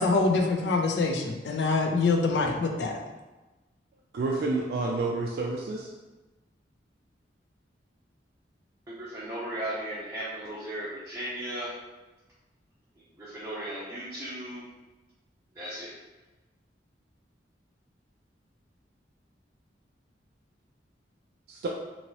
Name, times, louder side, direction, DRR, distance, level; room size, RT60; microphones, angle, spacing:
voice 1, 0.0-2.9, left 3 dB, 75° left, 3 dB, 0.4 m, -25 dB
voice 2, 4.1-5.9 21.5-21.7, right 3 dB, 60° right, -1 dB, 0.3 m, -29 dB
voice 3, 8.9-11.7 13.2-14.6 15.5-15.9, right 1 dB, 15° right, -10 dB, 0.6 m, -36 dB
2.9 x 2.7 x 2.9 m, 1.1 s
head